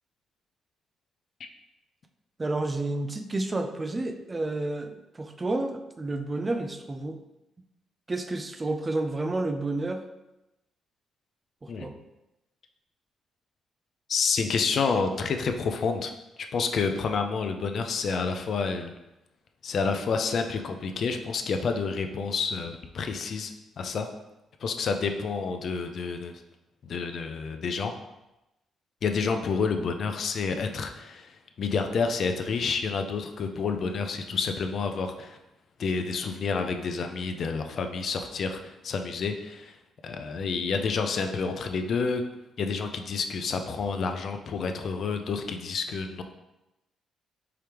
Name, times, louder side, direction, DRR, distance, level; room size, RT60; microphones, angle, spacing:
voice 1, 2.4-7.2 8.1-10.0 11.6-12.0, right 2 dB, 25° right, 6 dB, 0.4 m, -30 dB
voice 2, 14.1-16.1 16.5-18.9 19.6-23.5 23.8-24.1 24.6-26.3 26.8-27.9 29.0-35.4 35.8-39.8 40.0-42.2 42.6-46.2, left 5 dB, 55° left, 6 dB, 0.4 m, -29 dB
4.8 x 3.3 x 2.9 m, 0.96 s
cardioid pair, 90°, 0 cm